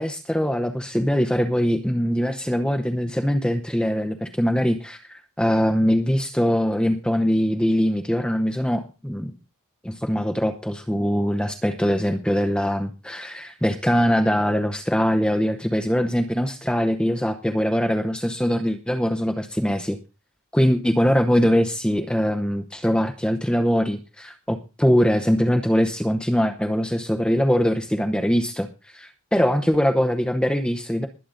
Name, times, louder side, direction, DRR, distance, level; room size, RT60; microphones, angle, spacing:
voice 1, 0.0-9.3 9.8-20.0 20.5-31.1, equal, 5° left, 6 dB, 0.8 m, -22 dB
20.5 x 8.5 x 3.9 m, 0.31 s
head